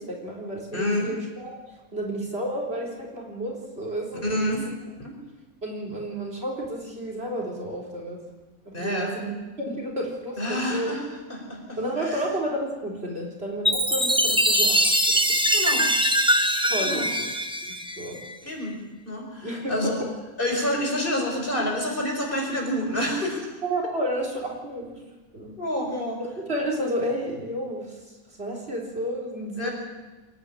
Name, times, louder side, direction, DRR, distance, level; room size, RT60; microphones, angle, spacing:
voice 1, 0.0-4.6 5.6-8.2 8.7-10.9 11.8-15.4 16.6-17.1 17.6-18.2 19.4-19.9 23.6-25.0 25.3-25.5 26.2-28.0 28.4-29.7, right 1 dB, 40° right, -1 dB, 4.2 m, -31 dB
voice 2, 0.7-1.1 4.2-5.1 8.7-9.1 10.4-12.3 15.5-15.9 16.8-17.1 18.4-18.8 19.0-20.0 20.4-23.5 25.6-26.2 29.6-29.7, left 1 dB, 35° left, 1 dB, 4.8 m, -28 dB
Chime, 13.7-18.3, equal, 5° right, 0.9 m, -22 dB
25.5 x 10.0 x 9.9 m, 1.2 s
omnidirectional pair, 1.5 m